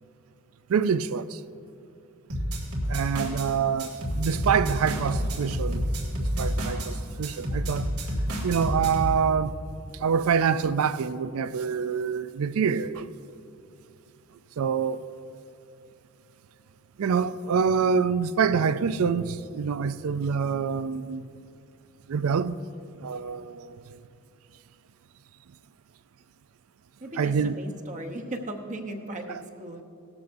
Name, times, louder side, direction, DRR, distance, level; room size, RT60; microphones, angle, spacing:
voice 1, 0.7-1.4 2.9-5.8 6.2-7.9 8.4-9.6 9.9-13.1 14.6-15.1 17.0-21.3 22.1-22.6 23.0-24.0 27.2-27.5 29.3-29.4, right 6 dB, 65° right, 0.4 m, -26 dB
sound 1, 2.3-3.5 3.8-6.9 7.2-9.2, equal, 85° right, 2.5 m, -29 dB
voice 2, 27.0-29.8, right 1 dB, 35° right, 0.9 m, -37 dB
17.5 x 13.5 x 2.6 m
head